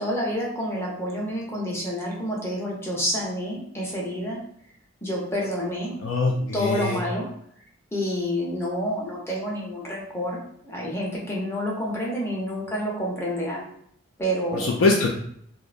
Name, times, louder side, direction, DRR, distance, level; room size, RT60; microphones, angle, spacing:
voice 1, 0.0-4.4 5.0-6.0 6.3-7.3 7.9-13.7 14.2-14.7, equal, 10° left, -4 dB, 0.5 m, -28 dB
voice 2, 6.0-7.0 14.5-15.1, left 3 dB, 75° left, -1 dB, 0.3 m, -22 dB
2.6 x 2.0 x 2.4 m, 0.67 s
head